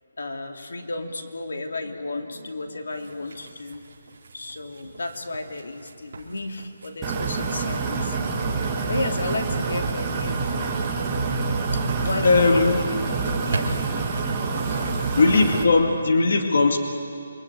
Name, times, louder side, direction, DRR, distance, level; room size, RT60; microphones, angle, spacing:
voice 1, 0.2-3.8 4.3-8.2 8.9-10.4 11.5-13.1 13.4-13.8 14.6-15.1, left 2 dB, 85° left, 4 dB, 2.7 m, -33 dB
sound 1, 2.9-15.4, right 3 dB, 40° right, 3.8 m, -40 dB
sound 2, 7.0-15.6, right 4 dB, 10° right, 1.7 m, -27 dB
voice 2, 12.2-12.8 15.2-16.8, left 3 dB, 50° left, 4 dB, 2.1 m, -18 dB
28.0 x 23.5 x 9.1 m, 2.5 s
hypercardioid pair, 180°, 0 cm